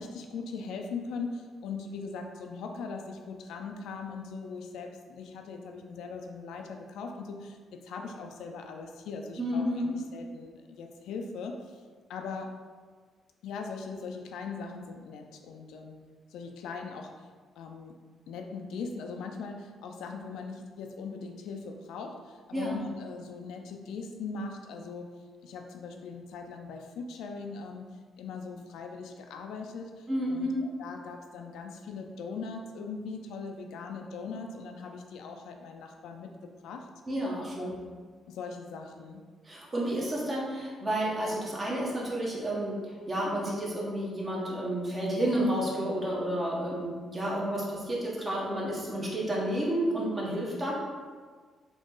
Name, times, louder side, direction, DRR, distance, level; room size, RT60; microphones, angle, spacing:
voice 1, 0.0-11.8 12.1-12.6 13.4-16.0 16.3-17.1 17.6-17.9 18.3-25.1 25.4-27.9 28.2-36.9 37.6-37.9 38.3-39.2, left 4 dB, 85° left, 3 dB, 0.4 m, -40 dB
voice 2, 9.4-9.9 22.5-22.8 30.1-30.6 37.1-37.8 39.4-50.7, right 1 dB, 30° right, -4 dB, 1.3 m, -31 dB
3.9 x 3.0 x 3.7 m, 1.5 s
cardioid pair, 90°, 0 cm